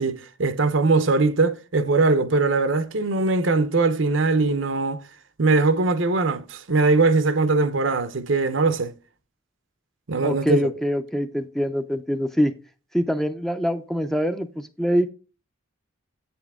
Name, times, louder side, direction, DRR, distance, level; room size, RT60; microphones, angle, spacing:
voice 1, 0.0-5.0 5.4-8.9 10.1-10.7, right 3 dB, 65° right, 0.7 m, -21 dB
voice 2, 10.2-12.5 12.9-15.1, equal, ahead, 0.5 m, -24 dB
8.3 x 7.0 x 3.6 m
head